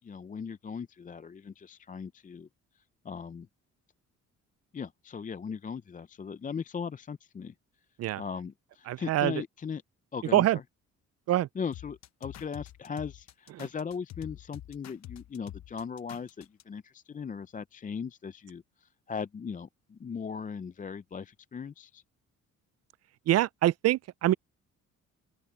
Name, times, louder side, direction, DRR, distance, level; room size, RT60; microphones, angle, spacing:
voice 1, 0.0-2.5 3.0-3.5 4.7-7.5 8.1-9.8 10.1-10.6 11.5-22.0, left 6 dB, 25° left, 0.5 m, -38 dB
voice 2, 8.9-9.3 10.3-10.6 11.3-11.5 23.3-24.3, right 14 dB, 55° right, 0.4 m, -24 dB
sound 1, 11.7-16.6, left 13 dB, 60° left, 0.9 m, -46 dB
open air
cardioid pair, 90°, 30 cm